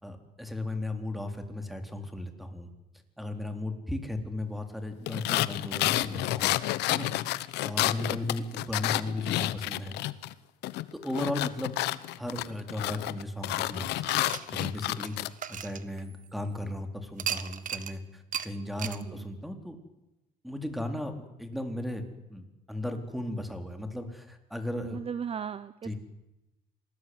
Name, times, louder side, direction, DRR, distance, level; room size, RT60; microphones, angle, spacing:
voice 1, 0.0-2.7 3.2-6.5 6.9-10.0 11.0-11.8 12.2-14.2 14.5-15.2 15.5-19.8 20.4-25.0 25.8-26.0, left 1 dB, ahead, 6 dB, 3.9 m, -36 dB
sound 1, 5.1-10.3 10.6-15.3, left 17 dB, 85° left, 1.0 m, -30 dB
voice 2, 7.8-8.2 18.8-19.3 24.8-25.9, right 7 dB, 35° right, 15 dB, 0.8 m, -38 dB
sound 2, 14.1-16.5 17.2-17.9 18.3-18.5 18.8-19.0, right 9 dB, 50° right, 1.6 m, -36 dB
27.0 x 19.5 x 9.6 m, 0.98 s
cardioid pair, 110°, 17 cm